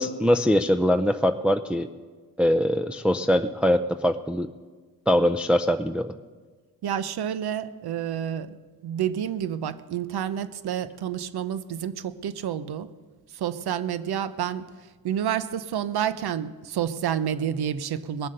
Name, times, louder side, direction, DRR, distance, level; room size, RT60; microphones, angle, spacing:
voice 1, 0.0-1.9 2.4-4.5 5.1-6.1, equal, 5° right, 7 dB, 0.4 m, -22 dB
voice 2, 6.8-12.9 13.3-14.6 15.0-18.3, right 9 dB, 80° right, 14 dB, 0.8 m, -29 dB
20.0 x 7.5 x 6.6 m, 1.4 s
cardioid pair, 75°, 38 cm